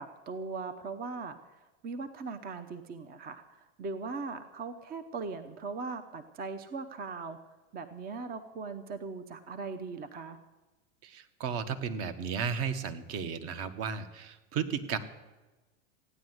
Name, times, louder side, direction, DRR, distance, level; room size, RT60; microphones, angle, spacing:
voice 1, 0.0-1.5 1.8-7.4 7.7-10.4, right 4 dB, 25° right, 10 dB, 0.8 m, -39 dB
voice 2, 11.0-15.0, right 6 dB, 40° right, 10 dB, 1.4 m, -34 dB
15.5 x 9.9 x 7.9 m, 1.1 s
hypercardioid pair, 125°, 36 cm